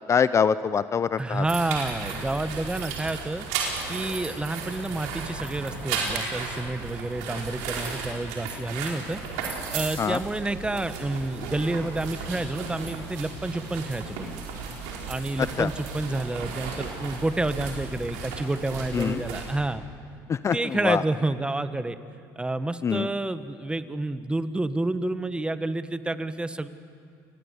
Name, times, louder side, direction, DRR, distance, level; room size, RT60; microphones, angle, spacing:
voice 1, 0.1-1.4 10.0-10.2 15.6-15.7 18.9-19.2 20.3-21.0 22.8-23.1, left 7 dB, 35° left, 14 dB, 0.6 m, -24 dB
voice 2, 1.2-3.5 3.9-14.4 15.1-19.8 20.5-22.0 22.4-26.7, right 2 dB, 10° right, 11 dB, 1.3 m, -29 dB
sound 1, 1.4-19.6, right 5 dB, 90° right, 4.8 m, -35 dB
28.5 x 20.5 x 8.3 m, 2.3 s
supercardioid pair, 85°, 8 cm